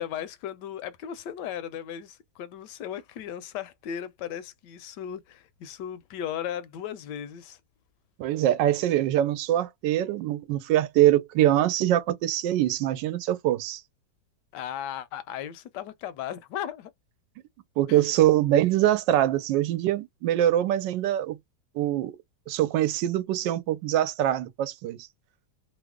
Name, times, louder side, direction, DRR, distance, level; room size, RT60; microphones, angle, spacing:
voice 1, 0.0-7.6 14.5-16.9 17.9-18.1, left 10 dB, 75° left, 1.1 m, -36 dB
voice 2, 8.2-13.8 17.8-21.4 21.7-22.1 22.5-25.1, right 12 dB, 90° right, 1.2 m, -23 dB
3.1 x 2.0 x 3.5 m
omnidirectional pair, 1.9 m